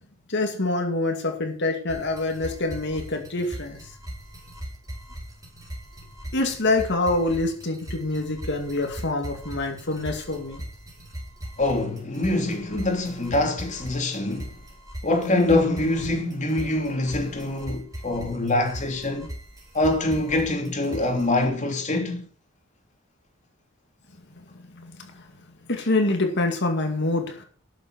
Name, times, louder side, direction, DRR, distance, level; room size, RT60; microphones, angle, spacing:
voice 1, 0.3-3.9 6.3-10.6 24.4-27.4, left 2 dB, 55° left, 2.3 m, -26 dB
sound 1, 1.9-21.5, equal, 15° right, 5.2 m, -40 dB
voice 2, 11.6-14.5 15.0-19.3 19.7-22.2, left 2 dB, 35° left, 3.1 m, -24 dB
12.5 x 7.5 x 6.5 m
head